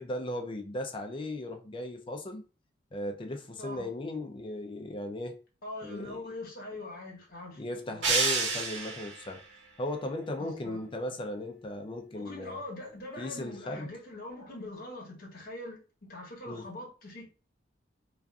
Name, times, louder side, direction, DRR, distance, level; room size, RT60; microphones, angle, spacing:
voice 1, 0.0-2.4 2.9-5.4 5.8-6.3 7.6-9.4 9.8-12.6 13.2-13.9 16.5-16.7, left 1 dB, 25° left, 0.4 m, -37 dB
voice 2, 3.6-3.9 5.6-7.6 7.9-8.1 10.4-10.8 12.1-17.3, left 2 dB, 50° left, 0.9 m, -43 dB
sound 1, 8.0-9.3, right 4 dB, 75° right, 0.9 m, -28 dB
2.5 x 2.4 x 2.3 m
head